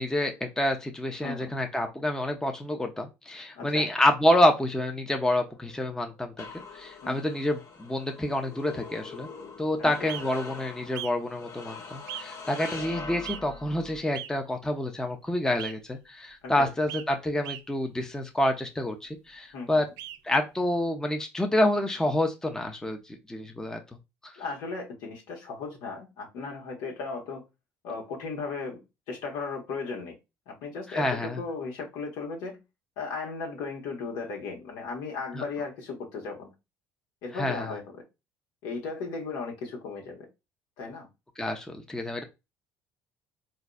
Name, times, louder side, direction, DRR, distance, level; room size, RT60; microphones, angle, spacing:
voice 1, 0.0-6.4 6.7-9.3 9.6-19.8 20.2-23.8 24.2-24.3 30.9-31.4 35.3-35.4 37.3-37.7 41.4-42.2, left 1 dB, 10° left, 0.7 m, -28 dB
voice 2, 1.2-1.7 3.5-3.9 7.0-7.3 9.8-10.1 16.4-16.7 19.5-19.8 24.4-27.4 27.8-28.8 29.1-30.2 30.5-32.6 33.0-36.5 37.2-37.8 38.6-40.3 40.8-41.1, left 4 dB, 75° left, 1.3 m, -36 dB
sound 1, 5.5-14.0, left 4 dB, 50° left, 0.9 m, -43 dB
sound 2, 10.1-10.2 10.9-11.1 12.1-12.2 13.2-13.4 14.1-14.3 15.6-15.7 16.9-17.0 17.4-17.6 20.0-20.2, right 13 dB, 70° right, 0.4 m, -37 dB
3.9 x 2.6 x 2.3 m
supercardioid pair, 75°, 7 cm